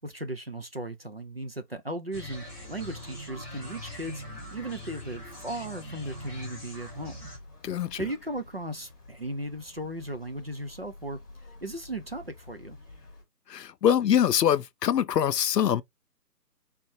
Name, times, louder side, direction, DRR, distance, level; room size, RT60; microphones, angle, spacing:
voice 1, 0.0-4.2 4.5-7.3 8.0-12.8, right 1 dB, 40° right, 0.5 m, -37 dB
sound 1, 2.1-7.4, equal, 10° right, 1.4 m, -42 dB
sound 2, 2.2-13.2, left 2 dB, 10° left, 0.9 m, -52 dB
voice 2, 7.6-8.0 13.5-15.8, left 9 dB, 75° left, 0.6 m, -24 dB
4.1 x 3.3 x 3.1 m
hypercardioid pair, 165°, 49 cm